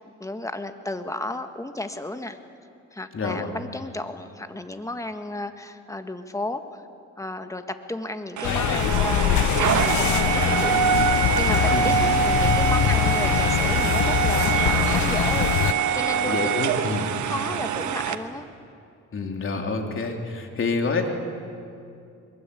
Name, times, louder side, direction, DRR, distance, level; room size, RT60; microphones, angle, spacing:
voice 1, 0.0-2.4 2.9-6.8 7.2-16.5 17.2-18.4, left 2 dB, 10° left, 8 dB, 1.7 m, -33 dB
voice 2, 3.1-3.5 11.7-12.0 16.2-17.1 19.1-21.1, left 4 dB, 45° left, 3 dB, 3.3 m, -27 dB
sound 1, 8.4-15.7, left 13 dB, 70° left, 0.6 m, -23 dB
sound 2, 8.4-18.2, right 7 dB, 70° right, 1.4 m, -24 dB
22.5 x 22.0 x 8.5 m, 2.5 s
cardioid pair, 90°, 30 cm